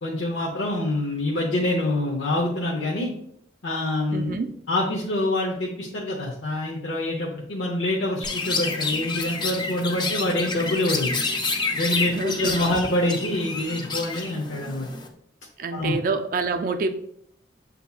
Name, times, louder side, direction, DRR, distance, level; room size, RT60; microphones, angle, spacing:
voice 1, 0.0-3.1 3.6-4.4 4.7-11.2 11.7-14.9 15.7-15.9, left 1 dB, 80° left, -3 dB, 0.7 m, -26 dB
voice 2, 4.1-4.5 12.1-12.8 15.6-16.9, right 4 dB, 45° right, 7 dB, 0.3 m, -27 dB
Chirp tweet, 8.2-15.1, left 3 dB, 25° left, 0.4 m, -29 dB
6.7 x 2.7 x 2.3 m, 0.69 s
head